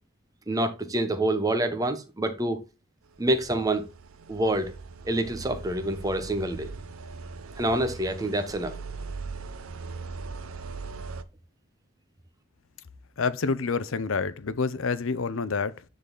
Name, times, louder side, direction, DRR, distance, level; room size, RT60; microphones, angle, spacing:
voice 1, 0.5-2.6 3.2-3.9 4.3-4.7 5.0-6.7 7.6-8.8, right 1 dB, 15° right, 0.9 m, -27 dB
sound 1, 3.2-11.2, right 4 dB, 90° right, 0.7 m, -40 dB
voice 2, 13.2-15.8, left 4 dB, 70° left, 0.6 m, -28 dB
9.6 x 4.0 x 3.9 m
head